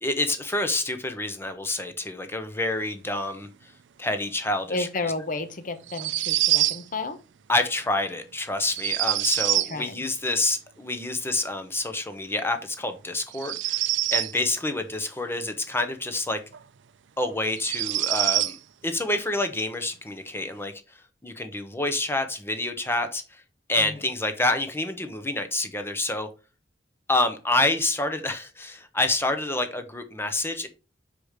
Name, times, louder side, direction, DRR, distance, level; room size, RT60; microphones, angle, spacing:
voice 1, 0.0-3.5 4.0-4.9 7.5-16.4 17.2-18.6 18.8-20.7 21.2-23.4 23.7-26.3 27.1-30.7, left 2 dB, 15° left, 0.8 m, -27 dB
voice 2, 4.7-7.2 9.7-10.0 23.8-24.0, left 3 dB, 45° left, 0.9 m, -32 dB
sound 1, 5.9-6.8 8.7-9.7 13.3-14.4 16.5-16.6 17.6-18.6, right 16 dB, 90° right, 0.5 m, -25 dB
5.0 x 4.8 x 4.9 m
head